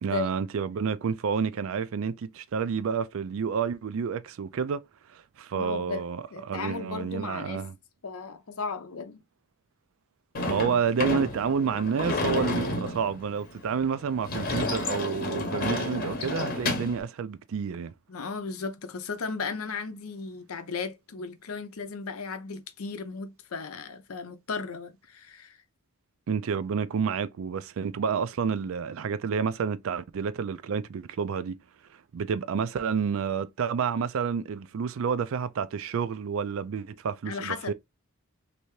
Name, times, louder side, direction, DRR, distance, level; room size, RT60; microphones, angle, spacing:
voice 1, 0.0-4.8 5.1-7.7 10.5-17.9 26.3-31.6 32.1-37.7, right 6 dB, 65° right, 0.4 m, -29 dB
voice 2, 5.5-6.0 6.3-7.6 8.0-9.2 18.1-25.6 37.3-37.7, left 4 dB, 75° left, 0.6 m, -35 dB
Sliding door / Slam, 10.3-17.0, left 2 dB, 40° left, 0.8 m, -31 dB
3.3 x 2.7 x 3.1 m
head